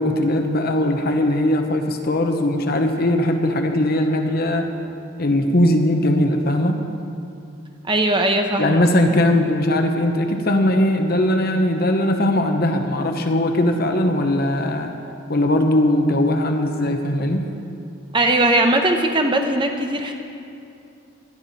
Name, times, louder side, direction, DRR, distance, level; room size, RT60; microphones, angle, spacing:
voice 1, 0.0-4.7 5.2-6.8 8.6-14.9 15.3-17.5, left 1 dB, 45° left, 4 dB, 1.0 m, -19 dB
voice 2, 7.9-8.8 18.1-20.1, right 1 dB, 20° right, 4 dB, 0.9 m, -19 dB
19.0 x 12.0 x 4.2 m, 2.6 s
head